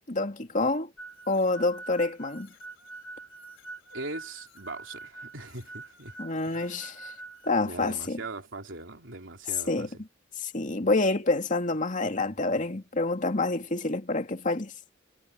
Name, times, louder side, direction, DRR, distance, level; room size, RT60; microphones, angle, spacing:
voice 1, 0.1-0.9 1.3-2.5 6.2-7.1 7.5-8.2 9.7-9.9 10.4-14.7, left 2 dB, 40° left, 2.5 m, -27 dB
sound 1, 1.0-7.5, right 2 dB, 80° left, 4.9 m, -45 dB
voice 2, 3.9-6.1 6.4-6.8 7.6-10.0, right 2 dB, 70° right, 3.4 m, -40 dB
head